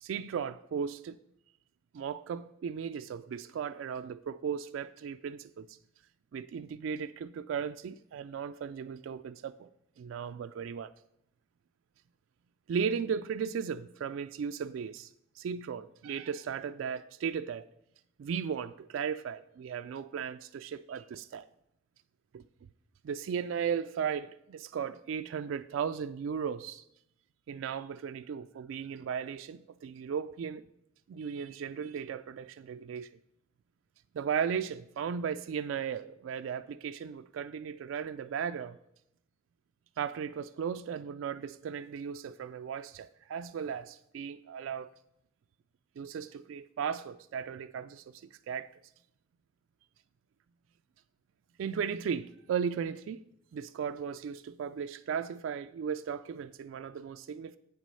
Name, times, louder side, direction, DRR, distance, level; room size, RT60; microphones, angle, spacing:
voice 1, 0.0-1.2 1.9-5.8 6.3-9.7 10.0-10.9 12.7-15.1 15.4-17.7 18.2-21.5 22.3-22.4 23.0-26.8 27.5-30.6 31.1-33.1 34.1-38.8 40.0-44.9 46.0-48.7 51.6-53.2 53.5-57.6, right 7 dB, 75° right, 0.3 m, -36 dB
8.3 x 6.0 x 5.5 m
head